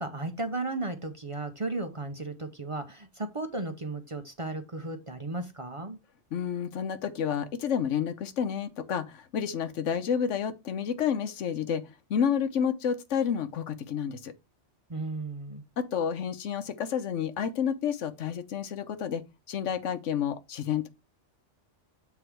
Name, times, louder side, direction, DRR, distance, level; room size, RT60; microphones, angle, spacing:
voice 1, 0.0-6.0 14.9-15.6, right 2 dB, 30° right, 0.7 m, -35 dB
voice 2, 6.3-11.8 12.1-14.3 15.8-20.9, left 8 dB, 80° left, 1.2 m, -30 dB
8.0 x 3.8 x 4.5 m
omnidirectional pair, 1.2 m